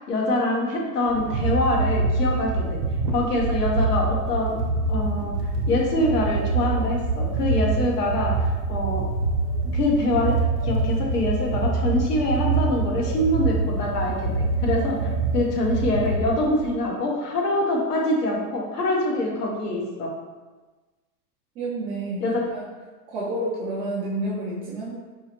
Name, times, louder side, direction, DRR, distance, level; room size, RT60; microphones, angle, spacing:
voice 1, 0.0-2.8 3.1-4.6 4.9-5.3 5.7-8.3 8.7-9.1 9.7-10.3 10.6-14.3 14.6-15.0 15.3-20.1 22.2-22.5, left 1 dB, 90° left, -1 dB, 1.2 m, -24 dB
sound 1, 1.1-16.7, right 3 dB, 35° right, 0.8 m, -25 dB
voice 2, 21.5-22.3 22.5-22.6 23.1-25.0, right 1 dB, 15° right, -11 dB, 0.5 m, -29 dB
4.7 x 2.8 x 2.9 m, 1.3 s
supercardioid pair, 150°, 46 cm